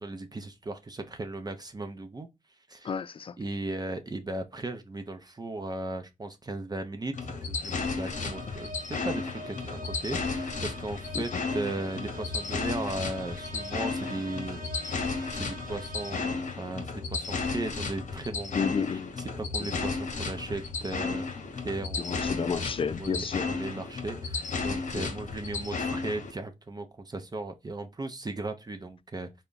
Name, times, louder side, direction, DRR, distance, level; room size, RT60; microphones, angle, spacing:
voice 1, 0.0-2.3 2.7-2.9 3.4-18.7 19.2-21.3 21.6-22.7 23.0-29.3, right 2 dB, 30° right, 0.6 m, -37 dB
voice 2, 2.8-3.4 11.1-11.2 18.6-19.1 19.6-19.7 22.0-23.5 24.9-25.1, left 6 dB, 40° left, 0.3 m, -31 dB
sound 1, 7.1-26.3, left 4 dB, 60° left, 0.9 m, -34 dB
sound 2, 8.1-16.6, right 1 dB, 85° right, 0.9 m, -44 dB
3.4 x 2.1 x 3.9 m
cardioid pair, 65°, 14 cm